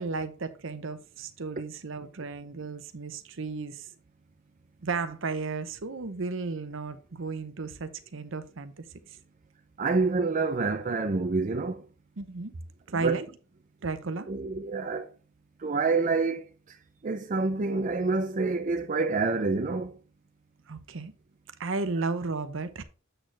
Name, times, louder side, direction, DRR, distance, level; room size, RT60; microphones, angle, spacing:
voice 1, 0.0-3.9 4.8-8.7 12.2-12.5 12.9-13.3 13.8-14.3 20.7-21.1 21.6-22.8, right 4 dB, 65° right, 0.8 m, -34 dB
voice 2, 9.8-11.8 12.9-13.2 14.3-15.1 15.6-16.8 17.0-20.0, right 3 dB, 40° right, 0.5 m, -27 dB
7.9 x 6.4 x 3.3 m
head